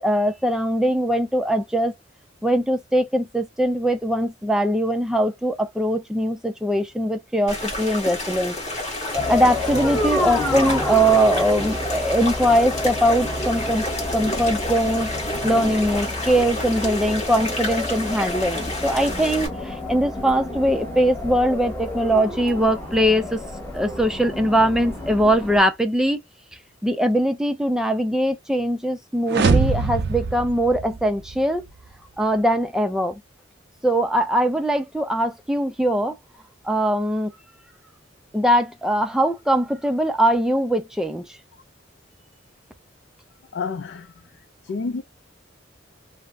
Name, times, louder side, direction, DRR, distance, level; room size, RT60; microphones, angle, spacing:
voice 1, 0.0-1.9 2.4-8.6 9.3-13.8 14.1-15.1 15.4-23.4 23.7-26.2 26.8-31.7 32.2-33.2 33.8-36.2 36.6-37.3 38.3-41.3, equal, 5° right, 0.4 m, -21 dB
sound 1, 7.5-19.5, left 1 dB, 35° left, 1.2 m, -30 dB
sound 2, 9.1-25.6, left 1 dB, 15° left, 0.9 m, -29 dB
sound 3, 29.3-31.4, right 4 dB, 60° right, 0.5 m, -22 dB
voice 2, 43.5-44.1 44.6-45.0, left 4 dB, 65° left, 0.4 m, -29 dB
2.6 x 2.0 x 3.3 m
head